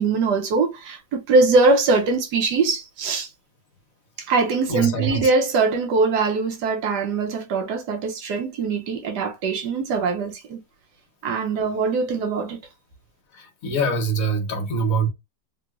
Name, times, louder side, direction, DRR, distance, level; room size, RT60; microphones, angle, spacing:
voice 1, 0.0-3.3 4.2-10.6 11.2-12.6, right 3 dB, 70° right, 1.1 m, -22 dB
voice 2, 4.7-5.3 13.3-15.1, right 3 dB, 55° left, 1.1 m, -24 dB
3.0 x 2.9 x 2.3 m
omnidirectional pair, 2.0 m